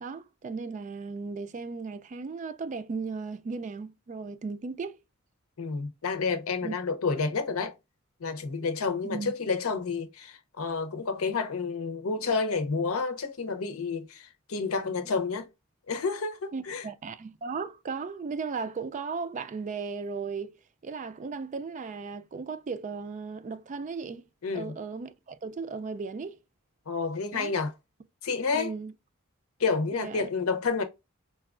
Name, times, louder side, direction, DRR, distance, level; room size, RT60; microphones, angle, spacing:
voice 1, 0.0-5.0 6.6-6.7 9.0-9.3 15.0-15.2 16.5-24.2 24.5-26.4 27.3-27.5 28.5-28.9 29.9-30.3, right 4 dB, 35° right, 0.3 m, -36 dB
voice 2, 5.6-7.7 8.2-15.5 15.9-16.8 24.4-24.7 26.9-27.7 28.2-28.7 29.6-30.8, left 4 dB, 90° left, 0.7 m, -30 dB
4.3 x 2.3 x 2.3 m
head